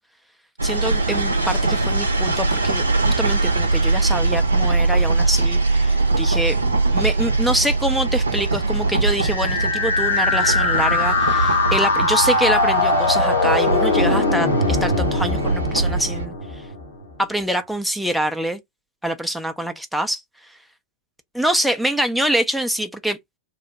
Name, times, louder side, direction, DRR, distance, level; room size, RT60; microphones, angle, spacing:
voice 1, 0.6-6.6 6.9-16.6 17.2-18.6 19.0-20.6 21.3-23.2, right 1 dB, ahead, 0.4 m, -25 dB
sound 1, 0.6-16.2, right 3 dB, 85° right, 0.6 m, -22 dB
sound 2, 9.1-17.0, left 3 dB, 70° left, 1.0 m, -21 dB
3.0 x 2.1 x 2.7 m
figure-of-eight pair, 95°, 0 cm